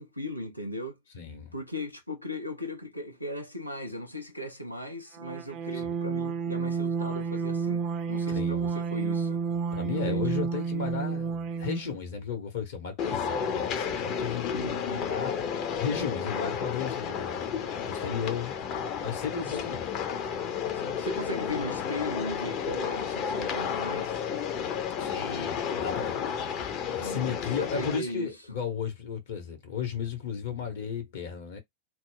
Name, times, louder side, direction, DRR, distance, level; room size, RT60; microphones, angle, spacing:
voice 1, 0.0-1.0 1.5-9.4 9.9-10.4 14.5-15.1 20.7-24.3 27.0-28.3, left 1 dB, 90° left, 0.7 m, -37 dB
voice 2, 1.1-1.5 8.3-8.7 9.7-14.6 14.9-15.3 15.8-17.5 17.9-18.5 19.0-19.8 25.0-26.2 26.9-31.6, left 7 dB, 60° left, 0.9 m, -34 dB
sound 1, 5.2-12.0, right 5 dB, 35° right, 0.4 m, -30 dB
sound 2, 13.0-28.0, left 7 dB, 40° left, 0.6 m, -32 dB
2.2 x 2.1 x 3.8 m
figure-of-eight pair, 90°, 0 cm